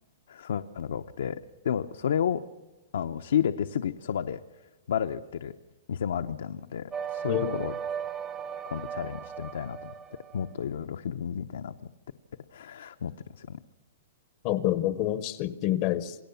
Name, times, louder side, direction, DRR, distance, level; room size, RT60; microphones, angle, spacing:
voice 1, 0.3-2.4 2.9-4.4 4.9-5.5 5.9-7.8 8.7-9.9 10.3-11.9 12.5-13.6, left 8 dB, 75° left, 7 dB, 0.8 m, -31 dB
sound 1, 6.9-10.6, right 7 dB, 15° right, 0.7 m, -37 dB
voice 2, 7.3-7.6 14.4-16.2, left 13 dB, 30° left, 16 dB, 0.7 m, -27 dB
28.0 x 18.5 x 7.0 m, 1.1 s
hypercardioid pair, 175°, 0 cm